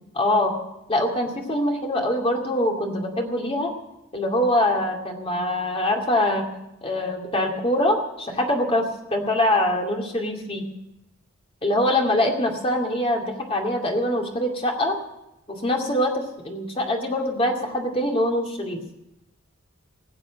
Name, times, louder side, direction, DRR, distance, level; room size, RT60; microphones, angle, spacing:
voice 1, 0.1-0.5 0.9-3.7 4.1-6.5 6.8-10.7 11.6-14.9 15.5-18.8, left 1 dB, 30° left, 1 dB, 2.4 m, -23 dB
19.0 x 7.7 x 7.6 m, 0.90 s
head